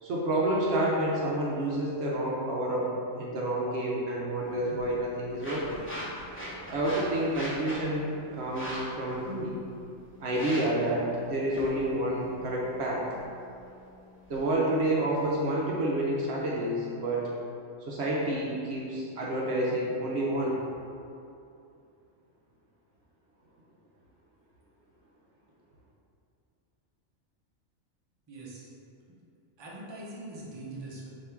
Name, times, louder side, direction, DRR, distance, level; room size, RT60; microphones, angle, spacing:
voice 1, 0.0-2.9 3.2-5.8 6.7-8.1 8.3-9.6 10.2-13.0 14.3-17.3 17.8-20.6, right 1 dB, 65° right, -4 dB, 0.8 m, -29 dB
sound 1, 4.4-14.4, equal, 10° left, 0.9 m, -42 dB
voice 2, 28.3-28.7 29.6-31.1, right 2 dB, 30° right, -6 dB, 0.6 m, -42 dB
3.5 x 2.7 x 4.4 m, 2.6 s
omnidirectional pair, 1.3 m